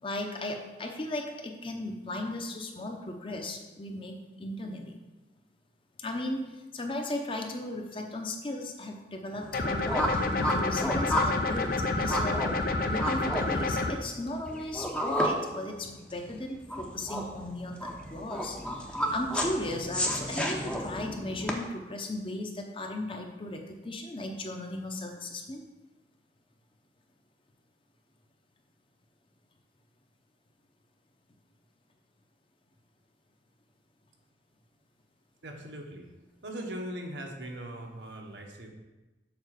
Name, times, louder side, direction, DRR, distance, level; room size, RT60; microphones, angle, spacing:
voice 1, 0.0-5.0 6.0-6.4 6.7-9.9 10.3-11.7 12.0-12.4 12.8-18.6 19.1-25.6, left 1 dB, 30° left, 3 dB, 0.9 m, -36 dB
sound 1, 9.4-21.5, equal, 5° left, 0.8 m, -32 dB
sound 2, 9.5-13.9, left 2 dB, 55° left, 0.7 m, -29 dB
voice 2, 35.4-36.1 36.4-38.7, right 1 dB, 85° right, 1 dB, 1.3 m, -40 dB
7.1 x 4.4 x 6.5 m, 1.1 s
head